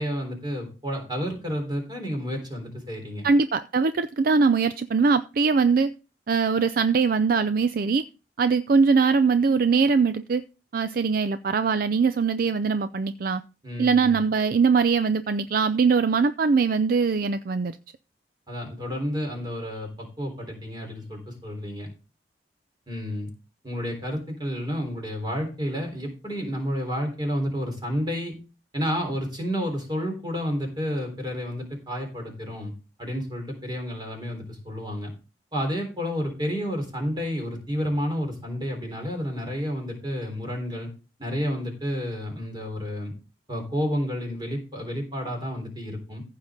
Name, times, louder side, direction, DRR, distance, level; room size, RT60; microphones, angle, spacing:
voice 1, 0.0-3.3 13.6-14.2 18.5-21.9 22.9-23.3 23.6-28.3 28.7-32.7 33.0-35.1 35.5-40.9 41.2-43.1 43.5-46.2, equal, 25° right, 3.7 m, -30 dB
voice 2, 3.2-5.9 6.3-8.0 8.4-10.4 10.7-13.4 13.8-17.8, right 5 dB, 55° right, 0.4 m, -22 dB
15.0 x 5.7 x 3.7 m
head